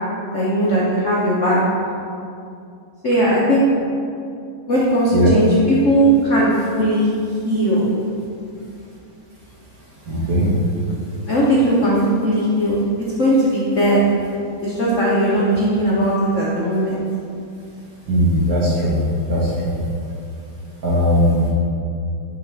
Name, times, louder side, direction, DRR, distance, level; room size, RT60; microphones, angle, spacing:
voice 1, 0.3-1.6 3.0-3.7 4.7-7.1 7.4-7.8 11.3-12.0 12.2-14.0 14.6-17.0, right 1 dB, 60° left, -6 dB, 0.8 m, -18 dB
voice 2, 10.1-10.5 18.1-19.0 19.3-19.4 20.8-21.5, equal, 50° right, -6 dB, 1.5 m, -18 dB
9.7 x 3.8 x 3.3 m, 2.5 s
omnidirectional pair, 2.4 m